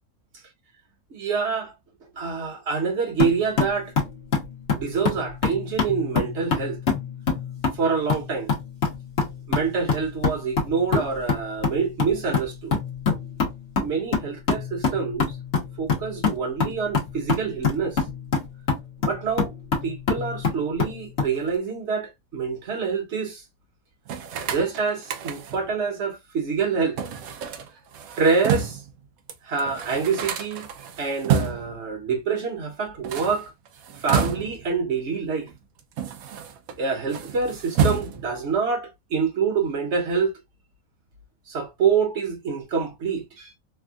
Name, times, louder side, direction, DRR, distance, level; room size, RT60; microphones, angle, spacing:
voice 1, 1.1-1.7 2.2-3.9 4.7-6.8 7.7-8.5 9.5-12.8 13.8-15.4 15.8-18.0 19.0-19.5 19.8-23.4 24.4-27.0 28.1-28.8 29.4-30.7 31.0-33.5 33.9-35.5 36.8-40.3 41.5-43.5, right 5 dB, 50° right, 1.3 m, -26 dB
sound 1, 3.2-21.4, left 5 dB, 50° left, 1.4 m, -26 dB
sound 2, 24.1-25.7 27.0-28.9 29.3-29.4 29.6-31.8 32.9-34.7 35.5-36.8 37.1-38.4, right 7 dB, 80° right, 1.1 m, -29 dB
3.5 x 2.3 x 2.3 m
omnidirectional pair, 1.5 m